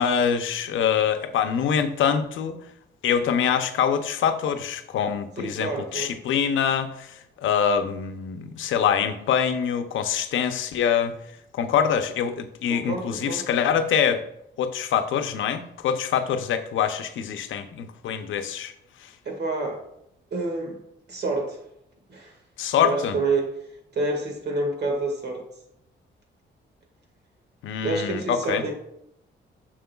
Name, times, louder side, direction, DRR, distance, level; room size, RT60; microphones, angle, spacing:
voice 1, 0.0-2.6 3.0-11.1 11.5-14.2 14.6-18.7 19.0-19.1 22.6-23.2 27.6-28.6, left 8 dB, 85° left, 8 dB, 0.6 m, -24 dB
voice 2, 5.4-6.1 12.7-13.4 19.2-19.9 20.3-20.8 21.1-21.6 22.1-22.3 22.8-23.5 23.9-25.4 27.8-28.7, right 3 dB, 60° right, 2 dB, 1.8 m, -28 dB
7.6 x 6.3 x 2.3 m, 0.77 s
cardioid pair, 110°, 20 cm